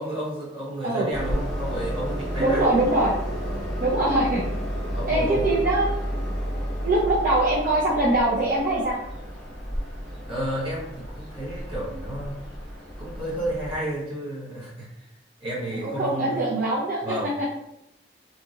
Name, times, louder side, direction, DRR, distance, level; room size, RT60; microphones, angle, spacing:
voice 1, 0.0-2.7 3.4-3.8 4.9-5.6 10.2-12.4 13.0-15.1 15.4-16.4 17.0-17.3, right 1 dB, 30° right, -7 dB, 1.1 m, -32 dB
Train, 1.1-13.8, equal, ahead, 1.2 m, -32 dB
voice 2, 2.4-3.1 3.8-4.4 5.1-5.9 6.8-9.0 15.8-17.0, right 2 dB, 45° right, -7 dB, 0.5 m, -22 dB
2.8 x 2.7 x 2.4 m, 0.84 s
head